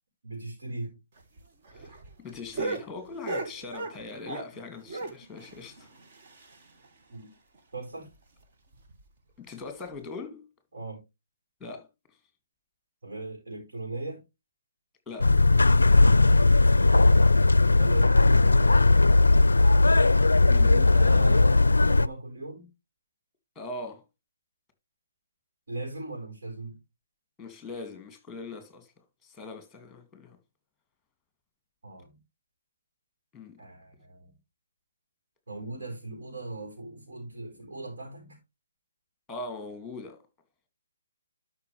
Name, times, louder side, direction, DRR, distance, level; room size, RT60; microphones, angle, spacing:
voice 1, 0.2-0.9 7.1-7.3 7.7-8.1 10.7-11.0 13.0-14.2 17.7-19.6 20.5-22.7 25.7-26.8 31.8-32.2 33.6-34.3 35.5-38.4, right 2 dB, 70° right, 5.0 m, -38 dB
sound 1, 1.2-4.6 4.9-6.9 7.2-7.3 7.5-7.6 8.0-8.2 8.7-9.0 9.9-10.0, right 3 dB, 40° right, 1.9 m, -37 dB
voice 2, 1.7-5.9 9.4-10.5 11.6-11.9 15.1-15.3 20.5-20.8 23.6-24.0 27.4-28.9 29.2-30.4 33.3-33.6 39.3-40.2, left 3 dB, 5° left, 2.4 m, -41 dB
sound 2, 15.2-22.1, left 2 dB, 80° left, 0.4 m, -18 dB
12.5 x 5.9 x 3.3 m
figure-of-eight pair, 145°, 0 cm